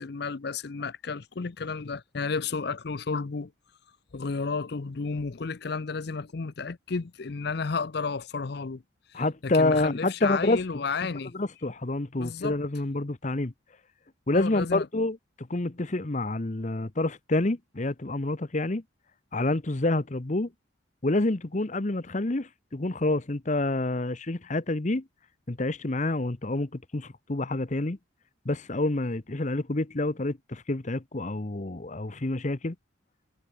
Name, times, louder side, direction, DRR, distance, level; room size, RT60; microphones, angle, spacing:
voice 1, 0.0-3.5 4.1-8.8 9.1-11.3 12.2-12.6 14.3-14.9, left 4 dB, 55° left, 0.6 m, -32 dB
voice 2, 9.1-10.8 11.3-13.5 14.3-18.8 19.3-20.5 21.0-25.0 25.5-28.0 28.4-32.7, left 2 dB, 40° left, 0.9 m, -28 dB
head